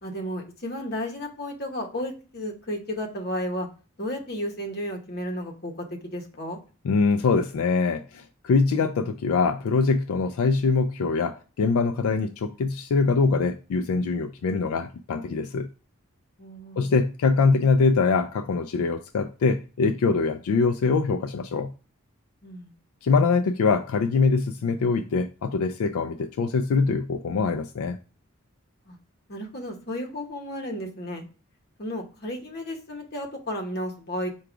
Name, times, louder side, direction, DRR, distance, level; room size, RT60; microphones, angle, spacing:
voice 1, 0.0-3.7 4.0-6.6 16.4-16.9 22.4-22.7 28.9-29.0 29.3-31.2 31.8-34.3, equal, 45° left, 0.9 m, -33 dB
voice 2, 6.8-15.7 16.8-21.7 23.0-28.0, left 4 dB, 80° left, 0.3 m, -23 dB
4.7 x 2.3 x 4.8 m
head